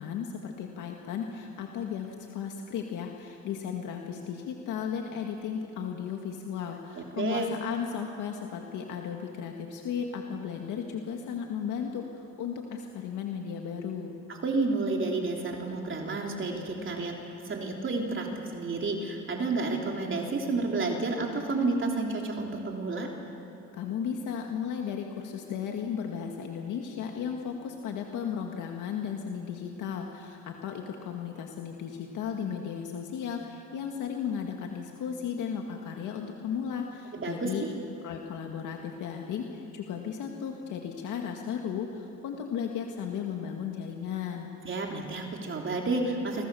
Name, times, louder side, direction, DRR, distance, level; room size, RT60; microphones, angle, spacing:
voice 1, 0.0-14.1 23.7-37.6 38.0-44.5, left 7 dB, 85° left, 2 dB, 2.0 m, -35 dB
voice 2, 7.0-7.5 14.3-17.2 17.4-23.1 37.1-37.7 44.7-46.4, right 3 dB, 40° right, 1 dB, 3.6 m, -30 dB
28.5 x 24.5 x 7.1 m, 2.8 s
cardioid pair, 90°, 30 cm